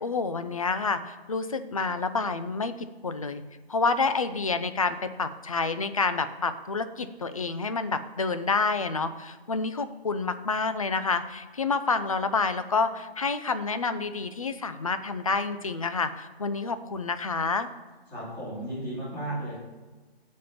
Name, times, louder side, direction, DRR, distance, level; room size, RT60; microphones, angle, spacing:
voice 1, 0.0-2.7 3.0-3.4 3.7-17.7, left 4 dB, 35° left, 11 dB, 0.5 m, -28 dB
voice 2, 18.1-19.6, right 1 dB, 10° left, -10 dB, 2.6 m, -34 dB
7.4 x 5.2 x 7.1 m, 1.3 s
figure-of-eight pair, 155°, 31 cm